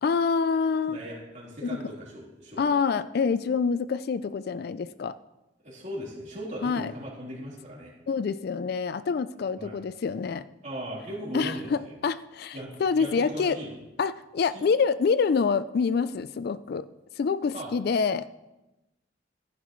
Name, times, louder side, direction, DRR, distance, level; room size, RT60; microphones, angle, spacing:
voice 1, 0.0-1.0 1.6-1.8 2.6-5.2 6.6-6.9 8.1-10.4 11.3-13.6 14.0-16.9 17.2-18.3, left 5 dB, 55° left, 15 dB, 0.3 m, -26 dB
voice 2, 0.9-2.6 5.6-7.9 9.6-9.7 10.6-11.9 12.5-13.7 14.5-14.6 17.5-17.7, equal, 40° right, -5 dB, 3.5 m, -38 dB
14.5 x 10.0 x 3.1 m, 1.0 s
head